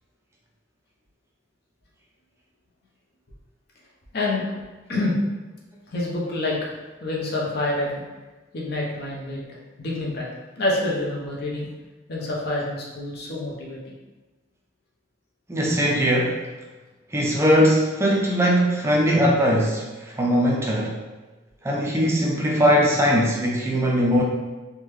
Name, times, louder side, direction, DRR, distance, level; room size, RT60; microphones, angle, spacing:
voice 1, 4.1-4.4 4.9-5.1 5.9-6.6 7.0-8.0 8.5-10.3 10.6-11.7 12.1-13.8, left 2 dB, 55° left, -3 dB, 0.7 m, -27 dB
voice 2, 15.5-16.4 17.1-21.0 21.6-24.2, equal, 15° right, -2 dB, 0.3 m, -20 dB
3.5 x 2.2 x 3.1 m, 1.2 s
head